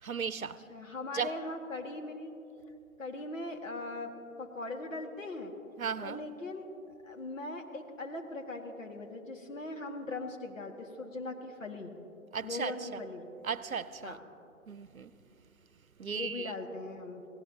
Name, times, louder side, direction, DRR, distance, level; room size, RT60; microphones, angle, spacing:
voice 1, 0.0-0.6 1.1-1.3 5.8-6.2 12.3-13.0 13.4-14.2 14.7-15.1 16.0-16.5, right 6 dB, 80° right, 0.7 m, -36 dB
voice 2, 0.7-2.3 3.0-5.5 6.0-6.7 7.0-11.9 12.4-13.3 14.0-14.2 16.0-17.2, left 2 dB, 65° left, 2.1 m, -40 dB
28.0 x 17.5 x 2.9 m
figure-of-eight pair, 135°, 41 cm